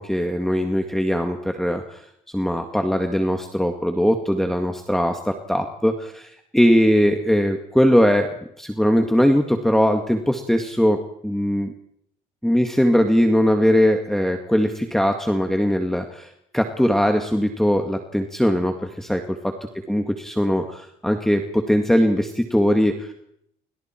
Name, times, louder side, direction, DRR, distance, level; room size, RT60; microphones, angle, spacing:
voice 1, 0.0-2.1 2.3-8.3 8.6-11.7 12.4-19.5 19.9-23.1, equal, ahead, 5 dB, 1.9 m, -20 dB
28.5 x 26.0 x 4.5 m, 0.73 s
cardioid pair, 110°, 17 cm